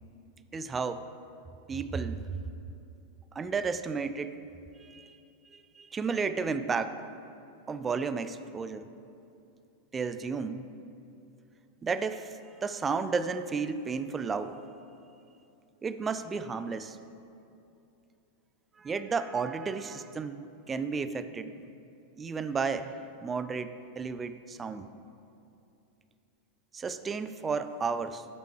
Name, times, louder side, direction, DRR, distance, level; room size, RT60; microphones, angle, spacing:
voice 1, 0.5-1.1 1.7-2.4 3.3-4.4 4.8-5.2 5.5-7.0 7.7-8.8 9.9-10.7 11.8-14.6 15.8-17.0 18.8-21.7 22.2-24.9 26.7-28.3, right 5 dB, 20° right, 11 dB, 0.3 m, -33 dB
12.0 x 5.6 x 3.2 m, 2.7 s
figure-of-eight pair, 90°, 0 cm